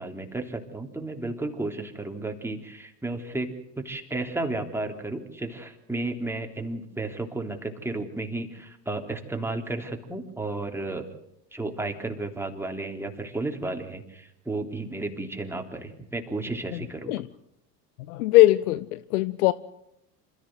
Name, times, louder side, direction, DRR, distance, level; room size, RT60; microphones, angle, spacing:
voice 1, 0.0-11.0 11.5-17.2, right 2 dB, 5° right, 3.4 m, -33 dB
voice 2, 18.1-19.5, left 17 dB, 65° left, 0.8 m, -20 dB
27.0 x 14.5 x 7.9 m
hypercardioid pair, 70°, 48 cm